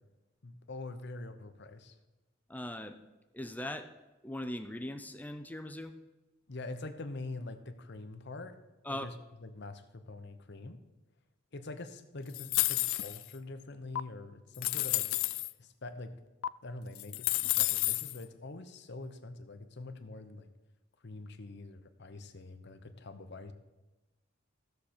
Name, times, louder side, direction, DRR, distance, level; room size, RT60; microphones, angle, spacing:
voice 1, 0.4-2.0 6.5-8.6 8.9-10.8 11.5-15.1 15.6-16.1 16.6-20.5 21.0-23.5, left 2 dB, 60° left, 9 dB, 0.9 m, -45 dB
voice 2, 2.5-3.0 3.3-3.9 4.2-5.9 8.8-9.1, left 1 dB, 10° left, 8 dB, 0.5 m, -39 dB
sound 1, 12.3-13.3 14.0-14.1 14.5-15.5 16.4-16.5 16.9-18.2, left 19 dB, 80° left, 0.3 m, -30 dB
15.0 x 6.6 x 4.4 m, 1.1 s
head